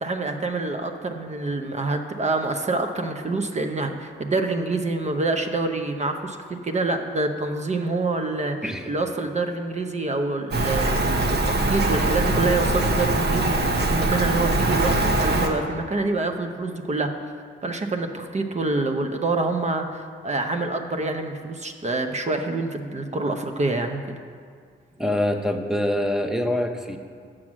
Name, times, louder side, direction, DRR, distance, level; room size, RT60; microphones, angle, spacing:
voice 1, 0.0-17.1 17.6-24.0, right 3 dB, 35° right, 5 dB, 0.7 m, -26 dB
Rain, 10.5-15.5, right 2 dB, 55° right, 1.0 m, -22 dB
voice 2, 25.0-27.0, left 1 dB, ahead, 5 dB, 0.8 m, -25 dB
6.2 x 6.0 x 6.1 m, 2.1 s
supercardioid pair, 60°, 21 cm